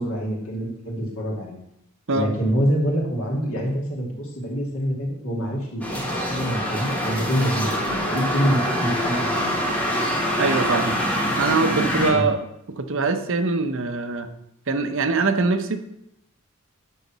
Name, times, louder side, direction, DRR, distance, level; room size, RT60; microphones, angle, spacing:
voice 1, 0.0-1.6 2.1-5.9 6.3-9.7 12.1-12.3, equal, 70° left, -1 dB, 2.7 m, -26 dB
sound 1, 5.8-12.1, equal, 5° left, 1.6 m, -25 dB
voice 2, 10.4-12.4 12.7-14.3 14.7-15.8, right 3 dB, 60° right, 8 dB, 0.8 m, -23 dB
11.5 x 4.0 x 7.2 m, 0.81 s
head